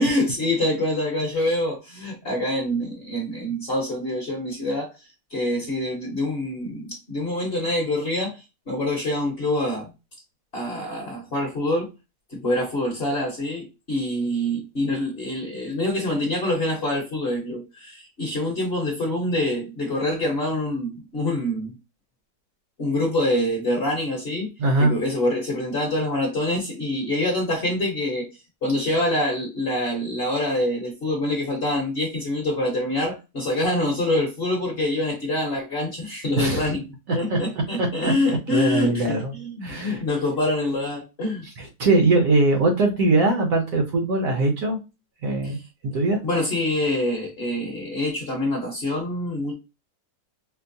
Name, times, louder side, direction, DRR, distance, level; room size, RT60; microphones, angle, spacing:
voice 1, 0.0-4.9 5.3-9.9 10.5-11.9 12.3-21.7 22.8-24.5 24.8-28.3 28.6-36.8 37.1-41.5 45.4-45.5 46.2-49.5, left 1 dB, 45° left, 0.9 m, -25 dB
voice 2, 24.6-24.9 36.4-36.7 37.3-37.4 37.8-38.1 38.5-39.3 39.6-40.0 41.6-44.8 45.2-45.6 45.9-46.2, right 2 dB, 60° right, 1.1 m, -21 dB
4.4 x 2.0 x 2.6 m
omnidirectional pair, 1.9 m